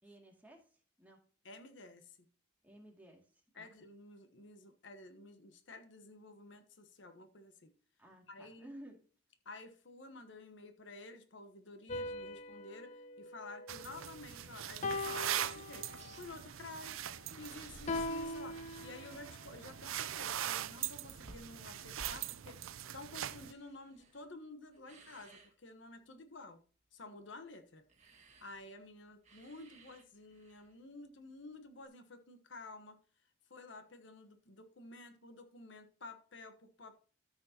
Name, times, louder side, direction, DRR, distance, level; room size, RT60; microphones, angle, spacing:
voice 1, 0.0-1.2 2.6-3.7 8.0-9.0, right 1 dB, 10° right, 0 dB, 2.2 m, -55 dB
voice 2, 1.4-2.2 3.6-7.7 8.3-8.7 9.4-26.6 26.9-27.8 28.4-33.0 33.5-37.1, left 2 dB, 60° left, 8 dB, 1.1 m, -52 dB
sound 1, 11.9-14.3 14.8-16.3 17.9-19.4, left 2 dB, 35° left, 0.7 m, -41 dB
sound 2, 13.7-23.5, right 11 dB, 85° right, 0.5 m, -42 dB
sound 3, 15.7-16.8 17.1-19.4 19.7-24.4 24.7-25.5 27.9-30.8 31.8-31.9, right 2 dB, 35° right, 1.7 m, -59 dB
13.5 x 6.3 x 2.8 m, 0.39 s
head